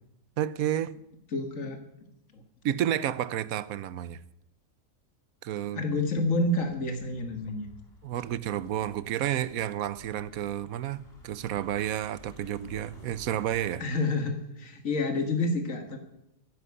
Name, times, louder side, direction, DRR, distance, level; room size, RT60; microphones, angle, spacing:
voice 1, 0.4-0.9 2.6-4.2 5.4-5.8 8.0-13.8, right 11 dB, 85° right, 1.2 m, -31 dB
voice 2, 1.3-1.8 2.3-2.4 5.7-7.7 13.8-16.0, left 2 dB, 70° left, 2.3 m, -29 dB
sound 1, 5.9-13.8, left 2 dB, 45° left, 2.9 m, -53 dB
11.0 x 11.0 x 9.7 m
omnidirectional pair, 1.5 m